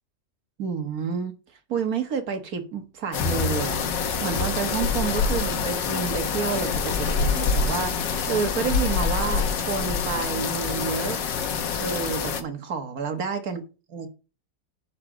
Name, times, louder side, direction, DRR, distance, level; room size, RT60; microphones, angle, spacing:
voice 1, 0.6-1.3 1.7-3.8 4.2-8.0 8.3-11.2 11.8-13.6 13.9-14.1, right 6 dB, 55° right, 1.8 m, -29 dB
sound 1, 3.1-12.4, left 5 dB, 90° left, 1.8 m, -26 dB
8.2 x 5.0 x 7.3 m
omnidirectional pair, 1.9 m